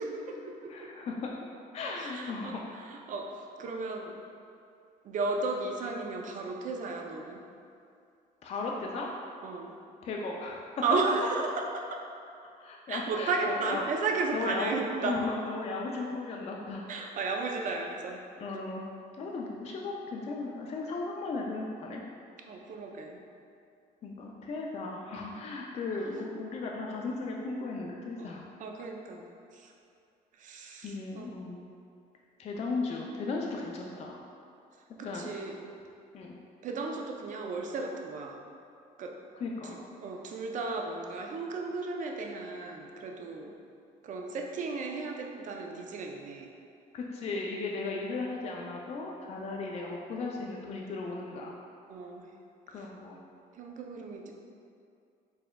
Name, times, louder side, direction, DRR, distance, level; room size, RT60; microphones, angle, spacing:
voice 1, 0.0-0.9 2.0-2.5 2.8-3.3 3.6-4.1 5.0-7.4 9.4-9.8 10.8-12.0 12.9-15.2 16.9-18.2 22.5-23.2 24.4-24.6 26.1-26.2 28.2-29.2 29.5-29.7 30.4-31.3 35.0-35.7 36.6-38.4 39.0-39.1 40.0-43.5 44.0-46.5 49.4-49.5 51.9-52.3 52.7-52.9 53.5-54.3, right 3 dB, 50° right, 2 dB, 0.5 m, -34 dB
voice 2, 0.7-1.3 1.7-2.7 8.4-9.1 10.0-10.7 12.5-13.8 14.3-14.7 15.0-16.9 18.4-18.9 19.2-22.0 24.0-28.4 30.8-31.6 32.4-34.2 35.0-35.4 36.1-36.4 39.4-39.8 46.9-51.5 52.7-53.2, left 3 dB, 40° left, -1 dB, 0.4 m, -36 dB
4.2 x 3.4 x 2.2 m, 2.5 s
cardioid pair, 110°, 17 cm